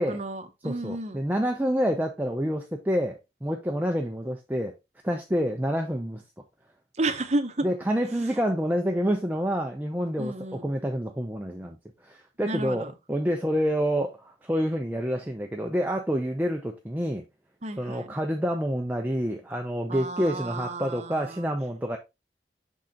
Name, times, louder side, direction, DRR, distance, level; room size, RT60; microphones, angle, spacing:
voice 1, 0.0-1.2 7.0-7.7 8.1-8.3 10.2-10.7 12.4-12.9 17.6-18.1 19.9-21.5, right 2 dB, 40° right, 0.9 m, -32 dB
voice 2, 0.6-4.7 5.0-6.2 7.6-11.8 12.0-17.2 17.8-22.0, equal, 10° right, 0.6 m, -28 dB
6.3 x 4.3 x 3.6 m
head